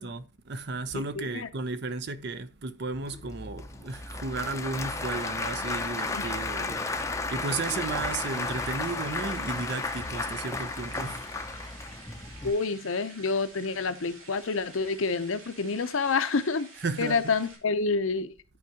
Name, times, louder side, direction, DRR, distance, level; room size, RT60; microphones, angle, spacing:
voice 1, 0.0-11.3 16.8-17.3, right 3 dB, 50° right, 0.6 m, -34 dB
voice 2, 0.9-1.5 6.1-6.2 12.4-16.7 17.0-18.3, left 4 dB, 70° left, 0.7 m, -28 dB
Applause / Crowd, 2.9-12.5, left 3 dB, 15° left, 0.6 m, -33 dB
sound 1, 7.6-17.6, right 3 dB, 80° right, 2.5 m, -50 dB
11.0 x 4.7 x 2.8 m
head